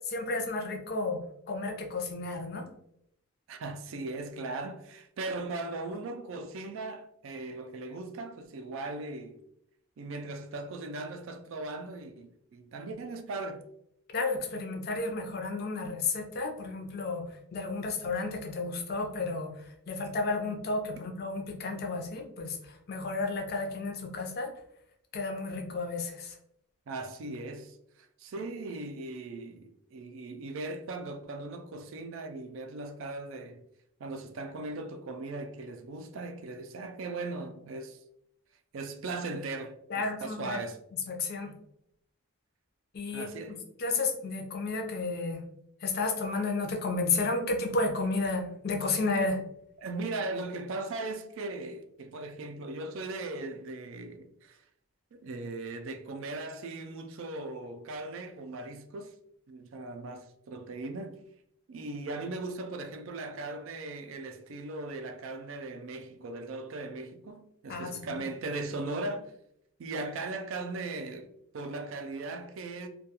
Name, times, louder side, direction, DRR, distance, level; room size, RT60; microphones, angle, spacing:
voice 1, 0.1-2.6 14.1-19.6 19.9-22.6 22.9-24.5 25.1-26.3 39.9-40.6 41.1-41.5 42.9-45.4 45.8-49.4 67.7-68.0, left 3 dB, 45° left, 0.4 m, -32 dB
voice 2, 3.5-9.4 10.0-13.6 26.9-33.7 34.0-38.0 38.7-40.8 43.1-43.6 49.8-54.6 55.1-59.2 59.5-61.2 61.7-69.3 69.8-72.9, right 2 dB, 65° right, 0.3 m, -38 dB
2.3 x 2.2 x 2.8 m
head